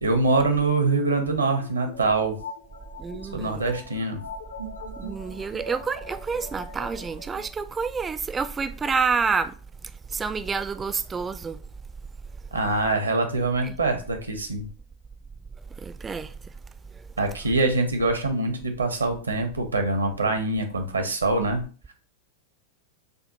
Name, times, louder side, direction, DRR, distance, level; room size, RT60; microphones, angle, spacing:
voice 1, 0.0-2.4 3.3-4.2 12.5-14.7 17.2-21.9, right 3 dB, 80° right, 0.8 m, -24 dB
sound 1, 0.9-7.5, left 1 dB, 75° left, 0.7 m, -42 dB
voice 2, 3.0-3.6 5.0-9.6 10.1-11.6 13.6-13.8 15.8-16.3, right 5 dB, 15° right, 0.3 m, -28 dB
6.5 x 2.4 x 2.8 m
figure-of-eight pair, 90°, 0 cm